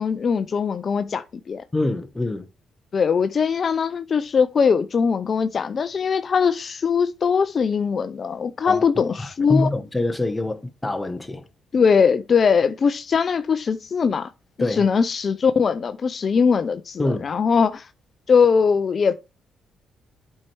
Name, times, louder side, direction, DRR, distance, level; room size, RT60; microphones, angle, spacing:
voice 1, 0.0-1.6 2.9-9.7 11.7-14.3 14.6-17.9 18.3-19.1, left 6 dB, 45° left, 0.5 m, -21 dB
voice 2, 1.7-2.5 8.6-8.8 9.2-11.4 14.6-14.8 17.0-17.3, left 2 dB, 15° left, 1.0 m, -25 dB
8.4 x 4.6 x 4.5 m
cardioid pair, 90°, 0 cm